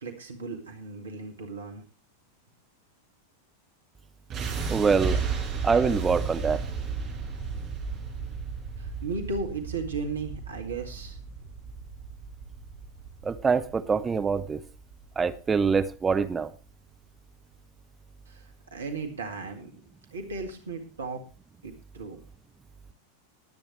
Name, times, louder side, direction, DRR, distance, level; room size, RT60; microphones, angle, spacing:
voice 1, 0.0-1.8 8.8-11.2 18.3-19.7 20.1-21.2 21.6-22.2, right 3 dB, 70° right, 2.1 m, -35 dB
sound 1, 4.3-16.3, right 5 dB, 35° right, 5.3 m, -34 dB
voice 2, 4.7-5.2 5.6-6.6 13.2-14.6 15.2-16.5, right 5 dB, 15° right, 0.8 m, -24 dB
21.0 x 8.9 x 3.2 m
figure-of-eight pair, 90°, 0 cm